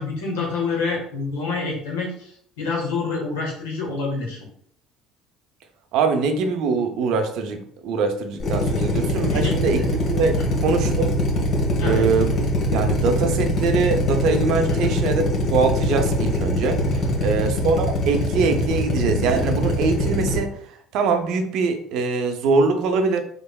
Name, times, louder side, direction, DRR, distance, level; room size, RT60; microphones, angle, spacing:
voice 1, 0.0-4.4 9.3-9.9 11.8-12.0 14.8-14.9 17.2-17.4, left 4 dB, 85° left, -2 dB, 1.3 m, -27 dB
voice 2, 5.9-9.8 10.1-10.4 10.6-11.1 11.8-12.3 12.7-16.8 17.2-20.5 20.9-23.2, right 4 dB, 70° right, 6 dB, 0.5 m, -22 dB
Drill, 8.4-20.4, left 1 dB, 55° left, 1.2 m, -22 dB
3.5 x 3.5 x 2.2 m, 0.64 s
hypercardioid pair, 75°, 0 cm